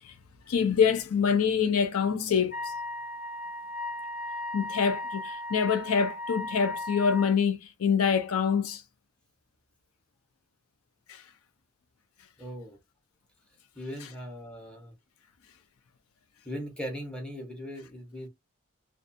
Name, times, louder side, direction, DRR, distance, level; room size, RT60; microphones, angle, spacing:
voice 1, 0.5-2.6 4.5-8.8, left 6 dB, 85° left, 0.5 m, -25 dB
Wind instrument woodwind instrument, 2.5-7.3, left 2 dB, 40° left, 0.8 m, -36 dB
voice 2, 12.4-12.8 13.8-14.9 16.4-18.3, equal, 5° left, 0.9 m, -39 dB
2.6 x 2.3 x 2.5 m
head